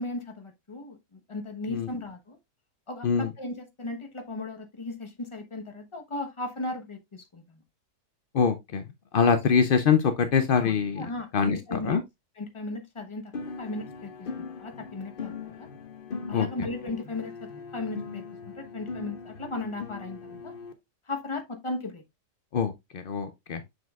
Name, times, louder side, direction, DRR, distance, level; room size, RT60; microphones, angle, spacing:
voice 1, 0.0-2.4 2.9-7.6 10.6-12.0 12.4-13.3 13.6-14.1 14.6-15.7 16.3-20.5 21.1-22.0, left 2 dB, 20° left, 1.0 m, -36 dB
voice 2, 8.3-8.8 9.1-11.0 11.3-12.0 16.3-16.5 22.5-23.6, left 6 dB, 70° left, 0.5 m, -24 dB
sound 1, 13.3-20.7, left 4 dB, 45° left, 0.8 m, -40 dB
6.9 x 6.3 x 2.3 m
omnidirectional pair, 1.7 m